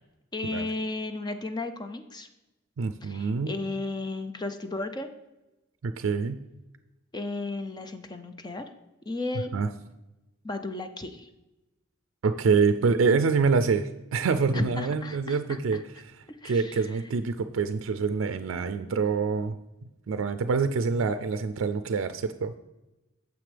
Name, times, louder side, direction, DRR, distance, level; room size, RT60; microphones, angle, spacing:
voice 1, 0.3-2.3 3.0-5.1 7.1-8.7 9.1-9.5 10.4-11.3 14.5-15.8 16.3-17.0, left 2 dB, 20° left, 8 dB, 0.5 m, -34 dB
voice 2, 2.8-3.6 5.8-6.4 9.5-9.7 12.2-16.1 16.4-19.6 20.1-22.5, right 5 dB, 90° right, 10 dB, 0.4 m, -26 dB
9.4 x 7.1 x 3.3 m, 1.0 s
head